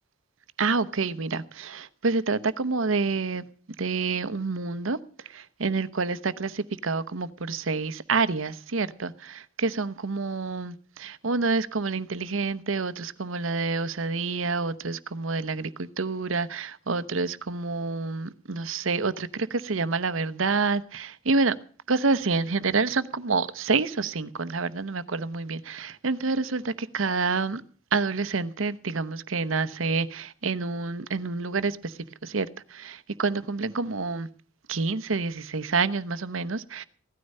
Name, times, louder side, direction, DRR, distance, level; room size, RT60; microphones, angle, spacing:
voice 1, 0.6-3.4 3.8-5.0 5.3-21.5 21.9-27.6 27.9-31.9 32.2-34.3 34.7-36.8, right 4 dB, 70° right, 0.9 m, -28 dB
16.5 x 13.0 x 5.4 m
head